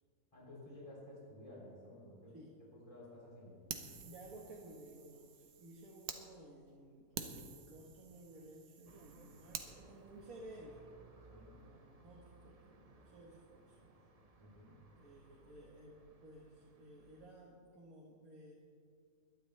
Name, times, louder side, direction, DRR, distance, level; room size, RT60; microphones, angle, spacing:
voice 1, 0.3-2.3 2.7-3.6 11.3-11.6 14.4-14.7, left 1 dB, 20° left, -6 dB, 3.4 m, -54 dB
Fire, 3.7-6.2 6.7-6.8 7.1-9.7, right 6 dB, 90° right, 1.5 m, -49 dB
voice 2, 4.0-10.8 11.5-13.8 15.0-18.5, right 1 dB, 70° right, -3 dB, 2.0 m, -56 dB
sound 1, 8.9-17.3, right 3 dB, 30° right, 0.8 m, -63 dB
21.5 x 11.0 x 3.3 m, 2.2 s
omnidirectional pair, 1.5 m